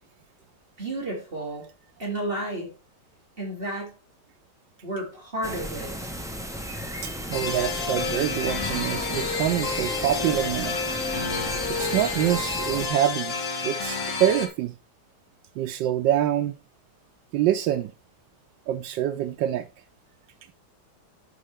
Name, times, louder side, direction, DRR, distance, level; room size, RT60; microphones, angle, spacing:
voice 1, 0.8-1.7 2.0-2.7 3.4-3.9 4.8-5.9, right 1 dB, 30° right, 3.1 m, -31 dB
sound 1, 5.4-12.9, equal, 5° right, 0.3 m, -35 dB
voice 2, 7.0-10.8 11.7-13.3 13.6-14.7 15.6-16.6 17.3-17.9 18.7-19.7, right 11 dB, 90° right, 1.3 m, -25 dB
sound 2, 7.3-14.5, left 4 dB, 45° left, 1.5 m, -29 dB
11.5 x 4.7 x 3.3 m
omnidirectional pair, 1.9 m